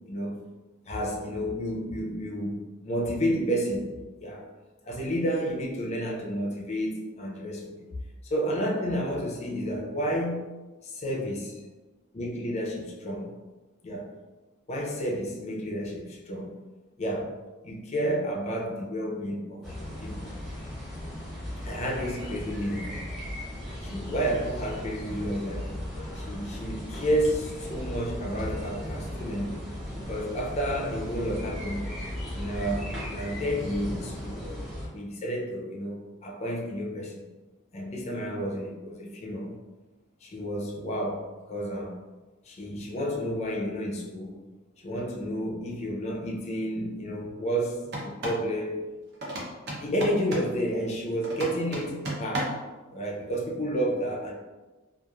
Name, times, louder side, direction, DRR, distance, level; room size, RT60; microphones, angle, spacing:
voice 1, 0.1-0.4 0.9-3.9 4.2-4.4 4.8-7.9 8.2-10.4 10.8-11.6 12.1-13.3 13.8-14.1 14.7-16.6 17.0-17.3 17.6-20.3 21.6-22.9 23.8-25.7 26.1-29.6 29.9-31.9 32.3-34.5 34.9-37.3 37.7-39.6 40.2-42.0 42.4-44.4 44.8-48.8 49.8-52.5 52.9-54.3, equal, 35° left, -2 dB, 0.5 m, -31 dB
sound 1, 19.6-34.9, left 1 dB, ahead, 0.8 m, -36 dB
sound 2, 47.8-48.5 49.2-50.6 51.2-52.7, right 1 dB, 55° right, 0.6 m, -34 dB
2.9 x 2.4 x 2.3 m, 1.2 s
head